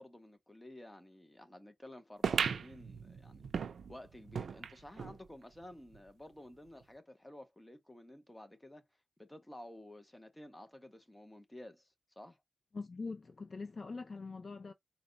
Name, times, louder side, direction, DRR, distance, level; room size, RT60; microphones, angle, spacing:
voice 1, 0.0-3.4 3.9-8.9 9.2-12.4, left 1 dB, 10° left, 0.8 m, -52 dB
sound 1, 2.2-5.2 5.6-5.7 5.9-6.0 6.8-6.9, right 6 dB, 85° right, 0.4 m, -37 dB
voice 2, 12.7-14.7, left 4 dB, 45° left, 0.4 m, -43 dB
4.1 x 2.2 x 3.8 m
wide cardioid pair, 130°, 0 cm